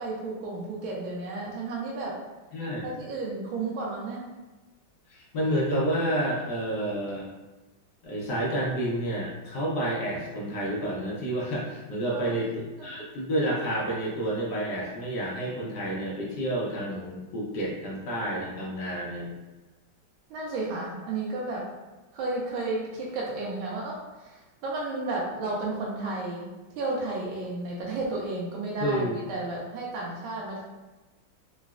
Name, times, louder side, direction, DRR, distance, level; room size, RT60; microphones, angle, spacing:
voice 1, 0.0-2.2 2.8-4.2 12.1-12.4 20.3-21.7 22.1-26.5 26.8-30.6, right 2 dB, 85° right, -4 dB, 1.4 m, -32 dB
voice 2, 2.5-2.8 5.1-7.3 8.0-19.3 28.8-29.2, right 1 dB, 65° left, -4 dB, 1.1 m, -29 dB
3.9 x 2.1 x 2.3 m, 1.1 s
omnidirectional pair, 2.2 m